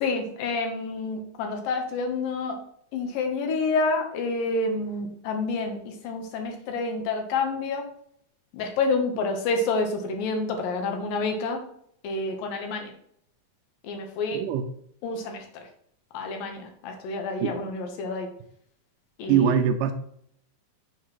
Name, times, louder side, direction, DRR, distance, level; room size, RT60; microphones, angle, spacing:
voice 1, 0.0-2.6 2.9-7.9 8.5-11.6 12.0-12.9 13.8-14.4 15.0-15.7 16.1-18.3 19.2-19.6, left 3 dB, 75° left, 4 dB, 2.5 m, -28 dB
voice 2, 19.3-19.9, right 9 dB, 85° right, 7 dB, 1.8 m, -22 dB
6.8 x 3.0 x 5.7 m, 0.67 s
omnidirectional pair, 4.2 m